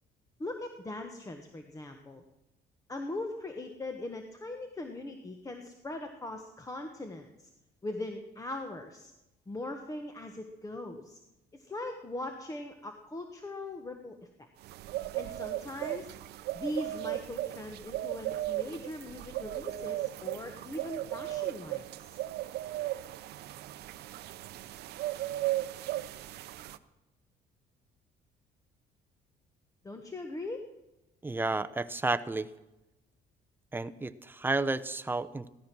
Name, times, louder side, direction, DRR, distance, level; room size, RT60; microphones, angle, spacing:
voice 1, 0.4-2.2 2.9-7.5 7.8-9.1 9.5-11.2 11.5-14.5 15.2-16.2 16.5-22.2 29.8-30.7, left 2 dB, 20° left, 5 dB, 1.2 m, -40 dB
sound 1, 14.6-26.8, right 15 dB, 75° right, 0.7 m, -36 dB
voice 2, 31.2-32.5 33.7-35.5, right 3 dB, 10° right, 11 dB, 0.7 m, -31 dB
16.0 x 13.0 x 6.1 m, 0.97 s
cardioid pair, 110°, 17 cm